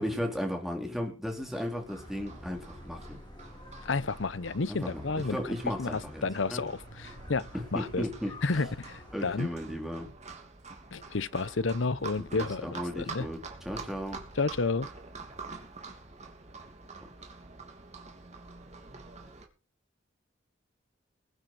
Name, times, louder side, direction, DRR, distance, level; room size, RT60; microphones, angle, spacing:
voice 1, 0.0-3.2 4.7-5.0 5.3-6.3 6.5-6.6 7.7-8.3 9.1-10.1 12.2-14.2, equal, ahead, 3.9 m, -35 dB
Livestock farm animals working animals, 1.3-19.5, right 4 dB, 35° right, 2.9 m, -47 dB
sound 1, 1.9-9.1, equal, 25° left, 4.3 m, -48 dB
voice 2, 3.8-8.1 8.4-9.5 10.9-13.3 14.4-14.9, left 3 dB, 70° left, 0.8 m, -31 dB
21.5 x 8.9 x 4.8 m
head